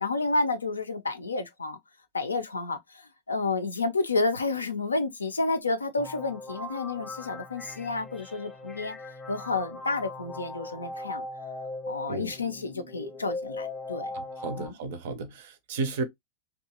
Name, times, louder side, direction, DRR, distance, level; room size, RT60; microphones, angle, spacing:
voice 1, 0.0-1.8 2.1-9.0 9.3-11.2 11.9-14.1 14.6-14.8, left 3 dB, 75° left, 0.4 m, -30 dB
sound 1, 6.0-14.7, left 2 dB, 15° left, 0.7 m, -39 dB
voice 2, 14.1-16.0, right 3 dB, 55° right, 0.5 m, -33 dB
2.7 x 2.3 x 2.7 m
figure-of-eight pair, 90°, 0 cm